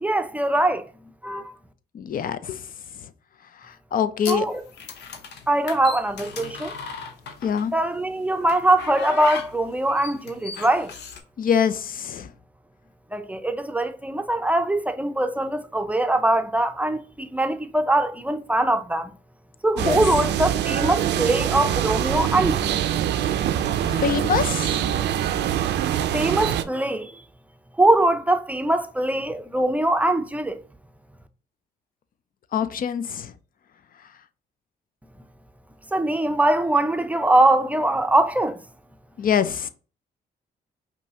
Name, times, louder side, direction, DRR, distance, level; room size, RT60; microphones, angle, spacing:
voice 1, 0.0-0.9 1.2-1.5 4.3-4.6 5.5-6.7 7.7-10.9 13.1-19.1 19.6-22.9 26.1-27.1 27.8-30.6 35.9-38.6, right 1 dB, 10° right, 0.5 m, -22 dB
voice 2, 1.9-2.6 3.6-4.5 7.4-7.7 11.4-12.3 19.8-20.0 23.8-24.8 32.5-33.3 39.2-39.7, left 7 dB, 55° left, 0.5 m, -24 dB
sound 1, 4.2-7.8 8.5-11.2, left 5 dB, 75° left, 0.9 m, -36 dB
sound 2, 19.8-26.6, right 10 dB, 85° right, 0.5 m, -24 dB
5.3 x 2.7 x 2.8 m
cardioid pair, 80°, 18 cm